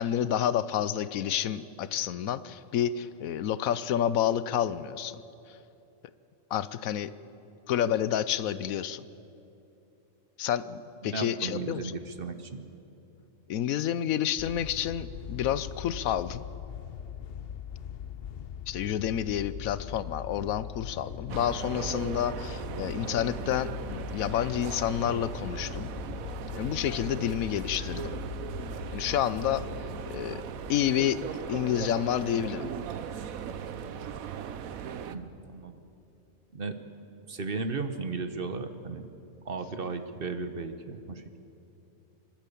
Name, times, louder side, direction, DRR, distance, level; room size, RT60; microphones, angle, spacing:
voice 1, 0.0-5.2 6.5-7.1 7.7-9.0 10.4-11.9 13.5-16.4 18.7-25.9 26.6-28.1 28.9-29.6 30.1-30.4 30.7-32.7, left 10 dB, 85° left, 15 dB, 1.1 m, -29 dB
voice 2, 11.1-12.6 35.1-35.8 36.5-36.8 37.3-39.1 39.4-41.2, right 4 dB, 45° right, 9 dB, 1.2 m, -35 dB
sound 1, 14.4-30.9, left 9 dB, 55° left, 0.7 m, -41 dB
sound 2, 21.3-35.2, right 8 dB, 85° right, 1.2 m, -38 dB
26.0 x 12.0 x 8.5 m, 2.8 s
omnidirectional pair, 1.4 m